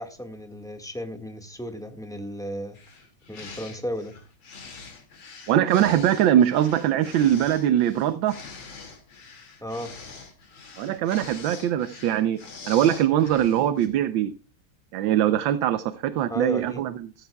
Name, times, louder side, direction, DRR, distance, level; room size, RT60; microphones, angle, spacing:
voice 1, 0.0-2.8 3.3-4.2 9.6-9.9 16.3-16.9, equal, ahead, 6 dB, 1.2 m, -34 dB
sound 1, 2.7-13.9, left 4 dB, 65° left, 3.1 m, -44 dB
voice 2, 5.5-8.3 10.8-12.4 12.7-14.3 14.9-16.9, right 11 dB, 70° right, 12 dB, 1.3 m, -22 dB
15.0 x 14.0 x 2.3 m, 0.32 s
omnidirectional pair, 2.4 m